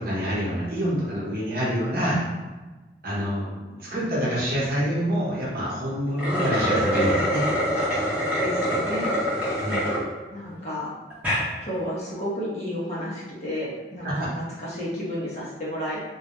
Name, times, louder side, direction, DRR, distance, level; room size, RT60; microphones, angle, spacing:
voice 1, 0.0-2.3 3.0-7.4 9.6-9.8 14.0-14.3, equal, 55° right, -7 dB, 0.8 m, -26 dB
sound 1, 6.1-10.0 10.5-10.6 11.1-11.5, equal, 10° right, 0.6 m, -25 dB
voice 2, 8.4-9.1 10.3-10.9 11.6-16.0, equal, 40° left, -6 dB, 0.6 m, -31 dB
2.2 x 2.0 x 2.8 m, 1.2 s
head